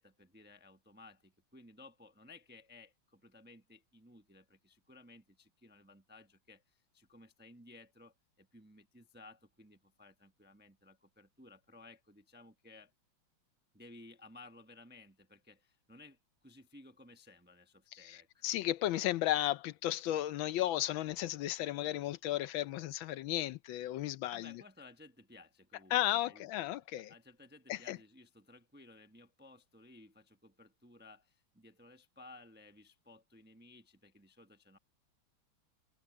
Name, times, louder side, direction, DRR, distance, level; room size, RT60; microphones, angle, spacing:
voice 1, 0.0-12.9 13.7-18.4 24.3-26.5 27.0-34.8, left 2 dB, 10° right, 0.5 m, -58 dB
voice 2, 18.4-24.5 25.9-27.1 27.7-28.0, left 14 dB, 75° left, 1.3 m, -34 dB
omnidirectional pair, 2.3 m